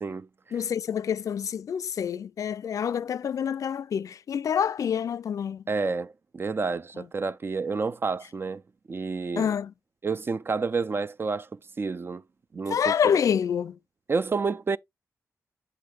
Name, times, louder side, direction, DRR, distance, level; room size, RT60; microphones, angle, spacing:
voice 1, 0.5-5.6 9.4-9.7 12.7-13.8, left 8 dB, 70° left, 0.3 m, -27 dB
voice 2, 5.7-8.6 8.9-9.5 10.0-11.5 11.8-12.2 12.5-12.9 14.1-14.8, right 4 dB, 40° right, 0.3 m, -29 dB
7.6 x 6.5 x 2.3 m
cardioid pair, 60°, 6 cm